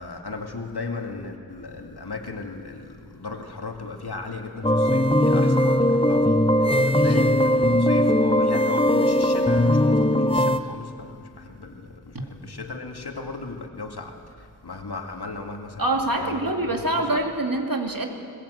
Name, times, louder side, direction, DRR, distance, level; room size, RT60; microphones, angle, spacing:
voice 1, 0.0-17.2, left 3 dB, 80° left, 3 dB, 2.2 m, -36 dB
sound 1, 4.6-10.6, left 1 dB, 15° left, 0.8 m, -19 dB
voice 2, 15.8-18.1, right 2 dB, 60° right, 2 dB, 2.9 m, -26 dB
22.0 x 20.5 x 8.0 m, 2.3 s
wide cardioid pair, 55°, 38 cm